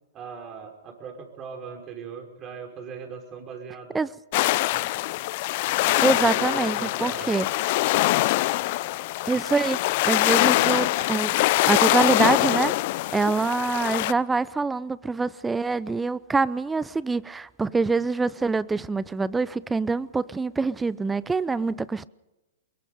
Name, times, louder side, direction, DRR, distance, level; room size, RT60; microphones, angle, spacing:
voice 1, 0.1-4.0 4.7-4.9 5.8-7.3, right 6 dB, 30° right, 5.6 m, -39 dB
sound 1, 4.3-14.1, left 18 dB, 50° left, 0.6 m, -23 dB
voice 2, 6.0-7.5 9.3-11.4 11.6-12.7 13.1-22.1, right 4 dB, 10° right, 0.6 m, -25 dB
23.5 x 22.5 x 5.2 m
hypercardioid pair, 110°, 0 cm